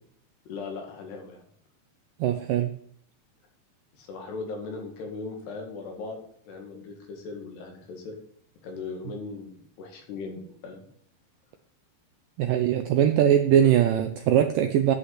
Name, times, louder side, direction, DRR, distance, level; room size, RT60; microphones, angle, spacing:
voice 1, 0.5-1.4 3.9-6.2 6.5-8.2 8.6-10.9, left 4 dB, 85° left, 1 dB, 4.2 m, -38 dB
voice 2, 2.2-2.7 12.4-14.9, right 10 dB, 85° right, 7 dB, 1.9 m, -21 dB
10.0 x 5.2 x 8.3 m, 0.63 s
omnidirectional pair, 4.6 m